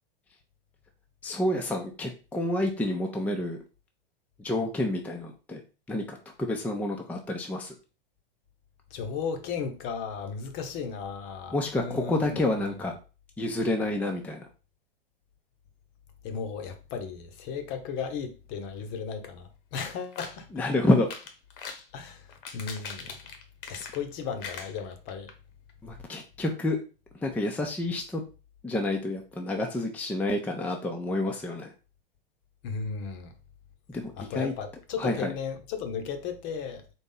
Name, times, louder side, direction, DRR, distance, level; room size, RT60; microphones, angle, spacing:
voice 1, 1.2-3.6 4.4-5.6 5.9-7.7 11.5-13.0 13.4-14.5 20.5-21.1 25.8-26.8 27.2-28.2 28.6-31.7 33.9-34.5 35.0-35.3, left 1 dB, 5° left, 0.6 m, -29 dB
voice 2, 8.9-12.4 16.2-20.5 21.9-23.2 23.7-25.3 32.6-33.3 34.2-36.9, left 6 dB, 40° left, 0.9 m, -35 dB
sound 1, 19.8-20.4 21.0-21.9 22.3-24.1 24.4-25.3 25.7-25.8 26.1-26.2, left 6 dB, 65° left, 1.2 m, -41 dB
4.2 x 2.9 x 3.8 m
hypercardioid pair, 120°, 29 cm